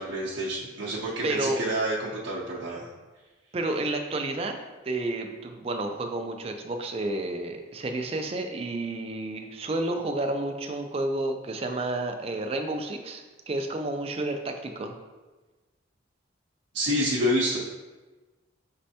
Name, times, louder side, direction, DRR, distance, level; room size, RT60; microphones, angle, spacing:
voice 1, 0.0-2.9 11.6-11.7 16.7-17.6, equal, 75° right, -7 dB, 0.6 m, -28 dB
voice 2, 1.2-1.6 3.5-4.5 4.8-14.9, right 2 dB, 30° right, 5 dB, 0.3 m, -30 dB
5.2 x 3.2 x 2.8 m, 1.2 s
head